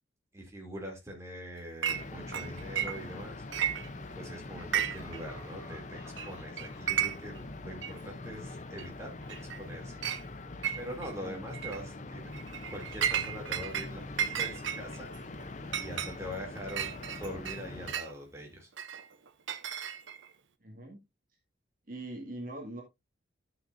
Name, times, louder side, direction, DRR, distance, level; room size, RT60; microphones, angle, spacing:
voice 1, 0.3-3.4 4.1-10.0 10.8-12.3 12.7-14.0 14.3-15.1 15.8-18.7, equal, 15° right, 0 dB, 2.8 m, -43 dB
Chink clink, 1.8-2.0 2.3-3.2 3.5-4.2 4.6-5.2 5.4-5.5 6.2-6.3 6.6-7.4 7.8-7.9 8.8-8.9 9.3-9.6 10.0-10.2 10.6-11.1 11.5-11.8 12.3-13.9 14.2-18.1 18.8-20.3, right 9 dB, 75° right, 0.8 m, -33 dB
sound 1, 1.9-17.9, left 2 dB, 40° left, 0.7 m, -43 dB
Laughter, 4.5-8.4, equal, 15° left, 5.1 m, -56 dB
voice 2, 20.6-21.0 21.9-22.8, right 1 dB, 45° right, 1 dB, 2.0 m, -42 dB
13.0 x 6.2 x 2.6 m, 0.21 s
head